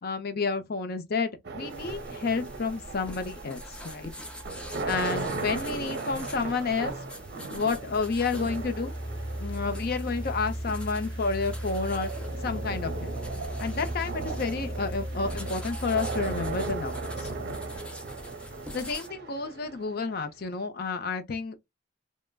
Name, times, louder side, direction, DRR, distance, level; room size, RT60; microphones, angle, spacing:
voice 1, 0.0-4.1 4.9-6.9 7.5-8.9 9.4-12.1 12.4-13.1 13.6-17.3 18.7-21.6, left 4 dB, 55° left, 0.6 m, -30 dB
sound 1, 1.4-20.5, right 3 dB, 60° right, 0.6 m, -37 dB
sound 2, 1.7-19.1, left 1 dB, 5° left, 0.5 m, -46 dB
sound 3, 7.7-18.7, equal, 25° left, 1.2 m, -37 dB
3.3 x 2.1 x 2.3 m
head